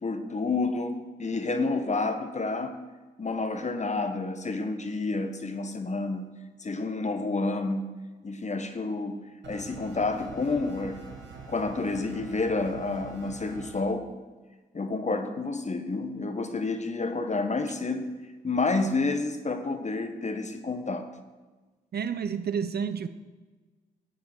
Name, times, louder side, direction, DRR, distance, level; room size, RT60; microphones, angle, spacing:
voice 1, 0.0-2.7 3.2-6.3 6.6-7.9 8.2-11.2 11.4-14.1 14.7-18.1 18.4-21.1, left 3 dB, 35° left, 8 dB, 1.3 m, -29 dB
sound 1, 9.4-13.8, right 5 dB, 75° right, 1.5 m, -45 dB
voice 2, 21.9-23.1, right 7 dB, 55° right, 12 dB, 0.7 m, -30 dB
13.0 x 8.6 x 4.6 m, 1.3 s
supercardioid pair, 45°, 19 cm